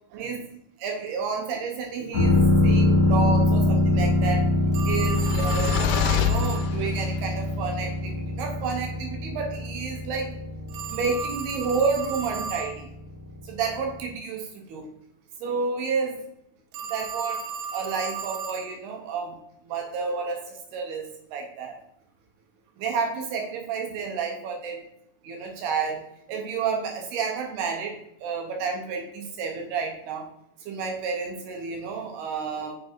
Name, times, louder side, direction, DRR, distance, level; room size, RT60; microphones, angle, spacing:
voice 1, 0.1-0.4 0.8-4.4 4.9-5.7 6.1-8.1 8.4-10.3 10.9-12.9 13.5-14.9 15.4-16.2 16.9-17.4 17.7-19.3 19.7-21.0 21.3-21.8 22.8-24.8 25.2-26.0 26.3-27.9 28.2-30.3 30.7-32.8, right 5 dB, 70° right, 2 dB, 2.7 m, -30 dB
sound 1, 2.1-13.7 14.0-14.1, left 1 dB, 30° left, 2.5 m, -24 dB
Telephone, 4.7-6.7 10.7-12.7 16.7-18.7, right 5 dB, 85° right, 3.4 m, -34 dB
sound 2, 4.8-7.2, left 11 dB, 85° left, 2.9 m, -27 dB
7.3 x 6.1 x 4.5 m, 0.75 s
omnidirectional pair, 5.6 m